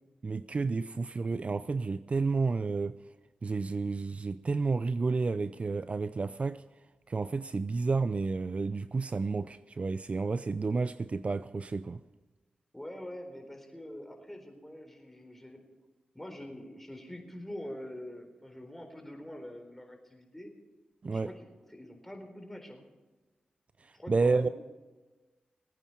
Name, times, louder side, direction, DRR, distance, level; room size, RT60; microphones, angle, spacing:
voice 1, 0.2-3.0 3.4-6.6 7.1-12.0 21.0-21.3 23.8-24.5, right 4 dB, 45° right, 0.4 m, -31 dB
voice 2, 12.7-15.6 16.1-20.5 21.1-22.8 23.9-24.5, left 1 dB, 10° left, 4.0 m, -45 dB
20.5 x 9.1 x 5.7 m
cardioid pair, 45°, 3 cm